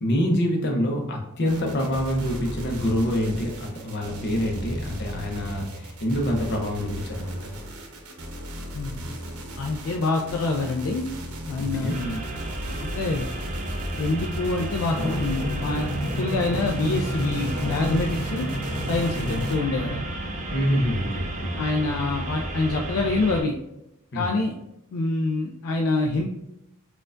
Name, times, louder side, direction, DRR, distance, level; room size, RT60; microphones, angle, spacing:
voice 1, 0.0-7.4 11.6-11.9 19.2-19.4 20.5-21.6 24.1-24.3, equal, 50° left, 0 dB, 0.7 m, -26 dB
sound 1, 1.4-19.6, equal, 75° right, 0.7 m, -37 dB
voice 2, 8.7-9.1 9.6-11.2 11.5-12.2 12.8-13.3 14.0-15.9 16.1-18.5 18.9-20.0 21.6-23.5 24.1-24.5 24.9-26.3, left 3 dB, 65° left, 1 dB, 0.3 m, -26 dB
sound 2, 11.9-23.4, right 1 dB, 35° right, 0.5 m, -32 dB
Drum, 14.9-20.0, equal, 5° left, 1.2 m, -31 dB
4.3 x 2.3 x 2.5 m, 0.88 s
head